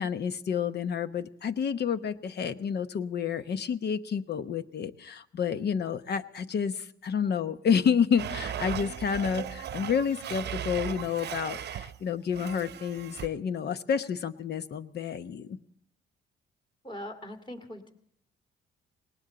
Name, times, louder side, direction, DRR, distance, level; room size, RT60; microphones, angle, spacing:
voice 1, 0.0-15.6, left 7 dB, 55° left, 11 dB, 1.0 m, -29 dB
Domestic sounds home sounds, 8.2-12.0 12.3-13.3, right 9 dB, 55° right, 0.8 m, -37 dB
voice 2, 16.8-17.9, left 1 dB, 25° left, 5 dB, 2.6 m, -41 dB
19.0 x 18.5 x 4.0 m, 0.70 s
cardioid pair, 90°, 20 cm